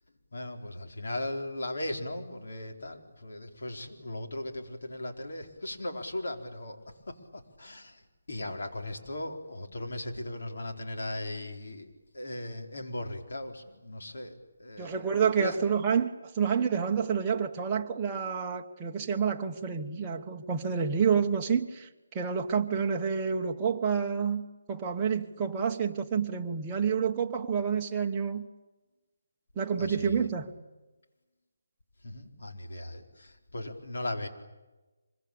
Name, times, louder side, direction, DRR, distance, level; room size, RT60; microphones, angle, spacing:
voice 1, 0.3-6.8 7.1-8.0 8.3-11.9 12.1-15.0 15.4-15.6 29.8-30.3 32.0-34.3, left 1 dB, 65° left, 4.4 m, -37 dB
voice 2, 14.8-21.9 22.1-28.5 29.5-30.5, right 6 dB, 15° right, 1.3 m, -28 dB
26.0 x 23.5 x 8.8 m
hypercardioid pair, 175°, 0 cm